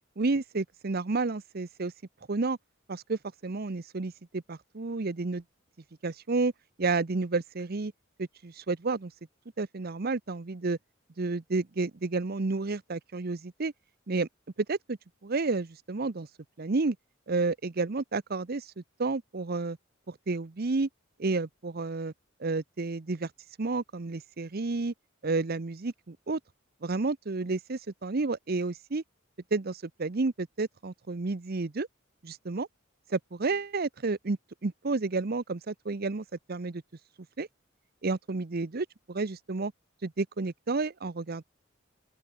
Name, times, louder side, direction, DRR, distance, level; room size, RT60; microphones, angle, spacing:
voice 1, 0.2-1.9 2.3-2.6 2.9-5.4 6.0-6.5 6.8-7.9 8.2-9.1 9.6-10.8 11.2-13.7 14.1-14.3 14.7-16.3 16.6-17.0 17.3-19.8 20.1-20.9 21.2-22.1 22.4-23.3 23.6-24.9 25.2-26.4 26.8-29.0 29.5-31.9 32.2-32.7 33.1-36.8 37.4-37.5 38.0-39.7 40.0-41.4, right 3 dB, 50° right, 0.8 m, -31 dB
open air
head